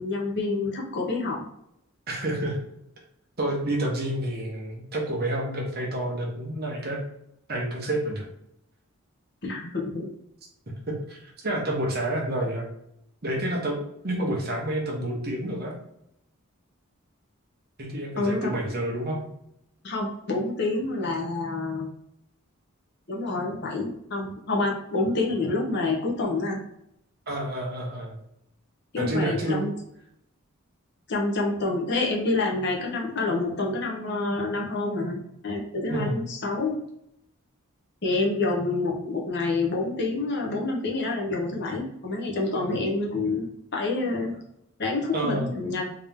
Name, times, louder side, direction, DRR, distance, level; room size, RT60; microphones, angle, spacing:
voice 1, 0.0-1.5 9.4-10.1 18.2-18.5 19.8-21.9 23.1-26.6 28.9-29.7 31.1-35.2 35.4-36.8 38.0-43.5 43.7-44.3 44.8-45.8, left 3 dB, 50° left, -1 dB, 0.9 m, -27 dB
voice 2, 2.1-2.6 3.4-7.0 7.5-8.2 10.9-12.7 13.2-13.8 14.0-15.7 17.8-19.3 27.3-28.2 29.0-29.6 35.9-36.1 45.1-45.5, right 1 dB, 45° right, -1 dB, 1.0 m, -29 dB
3.6 x 2.9 x 3.5 m, 0.78 s
head